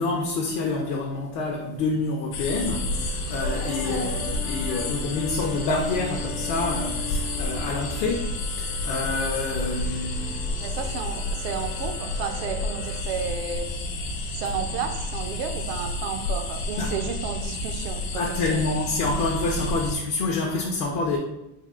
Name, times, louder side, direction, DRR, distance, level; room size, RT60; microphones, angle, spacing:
voice 1, 0.0-10.5 16.8-17.0 18.1-21.2, left 3 dB, 50° left, -1 dB, 0.5 m, -27 dB
sound 1, 2.3-19.9, left 2 dB, 80° left, 0.9 m, -30 dB
sound 2, 2.7-13.0, left 2 dB, ahead, 0.4 m, -39 dB
voice 2, 3.8-4.2 10.6-13.7 14.3-18.7, right 7 dB, 60° right, 6 dB, 0.5 m, -32 dB
3.6 x 2.4 x 3.5 m, 0.91 s
cardioid pair, 155°, 49 cm